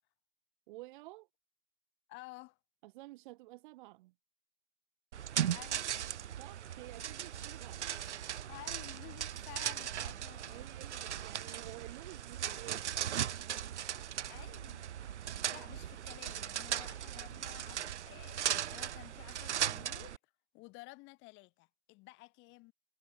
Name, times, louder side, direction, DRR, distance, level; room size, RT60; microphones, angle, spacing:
voice 1, 0.7-1.3 2.8-4.1 6.4-7.9 10.5-13.0, right 19 dB, 40° right, 2.1 m, -51 dB
voice 2, 2.1-2.6 5.5-5.9 8.5-10.7 14.3-14.9 15.5-20.2 20.5-22.7, left 23 dB, 30° left, 3.6 m, -53 dB
sound 1, 5.1-20.2, right 10 dB, 70° right, 0.7 m, -38 dB
figure-of-eight pair, 115°, 36 cm